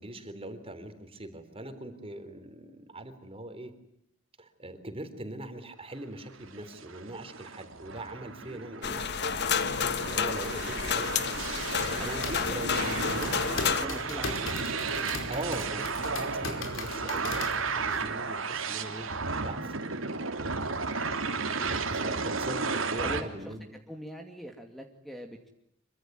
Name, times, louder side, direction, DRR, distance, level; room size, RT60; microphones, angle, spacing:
voice 1, 0.0-3.7 4.4-9.1 9.7-11.1 11.7-14.6 15.3-19.1 19.4-19.7 20.4-20.7 21.2-23.6, right 1 dB, 30° right, 8 dB, 3.7 m, -41 dB
sound 1, 6.4-23.2, right 4 dB, 85° right, 3.1 m, -34 dB
sound 2, 8.8-13.9, left 6 dB, 60° left, 1.4 m, -30 dB
sound 3, 11.9-18.1, left 3 dB, 75° left, 4.9 m, -38 dB
voice 2, 13.7-14.5 15.0-15.2 19.6-19.9 22.6-23.6 23.9-25.5, equal, ahead, 4 dB, 2.5 m, -43 dB
26.0 x 24.5 x 9.4 m, 0.75 s
head